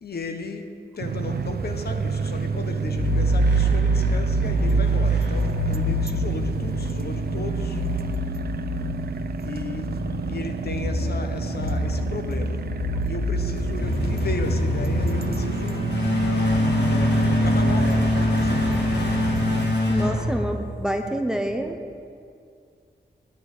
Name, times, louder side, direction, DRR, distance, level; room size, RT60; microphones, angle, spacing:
voice 1, 0.0-7.8 9.4-9.9 10.3-12.7 13.0-15.9 16.9-18.8, left 3 dB, 65° left, 6 dB, 1.0 m, -35 dB
sound 1, 1.0-19.8, right 5 dB, 60° right, 0.5 m, -30 dB
sound 2, 2.9-21.0, equal, 80° left, 1.9 m, -24 dB
voice 2, 19.9-21.8, equal, 5° right, 6 dB, 0.7 m, -27 dB
9.6 x 9.3 x 8.2 m, 2.3 s
wide cardioid pair, 145°, 18 cm